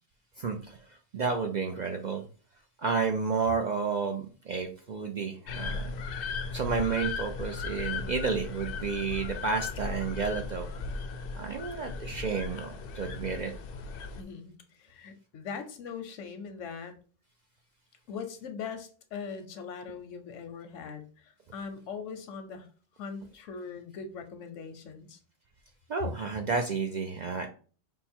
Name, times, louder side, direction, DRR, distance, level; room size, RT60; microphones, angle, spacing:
voice 1, 0.4-2.2 2.8-6.0 6.5-10.7 11.4-13.5 25.9-27.5, right 5 dB, 60° right, 4 dB, 0.4 m, -31 dB
sound 1, 5.5-14.2, left 4 dB, 60° left, 0.6 m, -37 dB
voice 2, 14.2-16.9 18.1-22.7 23.0-25.2, left 6 dB, 90° left, 8 dB, 1.1 m, -41 dB
5.4 x 2.1 x 4.3 m, 0.40 s
omnidirectional pair, 1.2 m